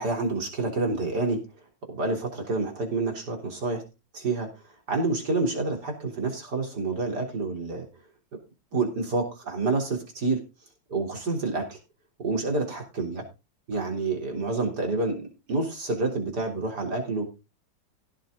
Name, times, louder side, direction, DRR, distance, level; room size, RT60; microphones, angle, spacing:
voice 1, 0.0-1.4 1.9-3.8 4.1-4.5 4.9-7.8 8.7-10.4 10.9-11.8 12.2-13.2 13.7-17.3, right 3 dB, 60° right, 1 dB, 4.1 m, -28 dB
16.5 x 6.8 x 3.9 m, 0.28 s
omnidirectional pair, 2.0 m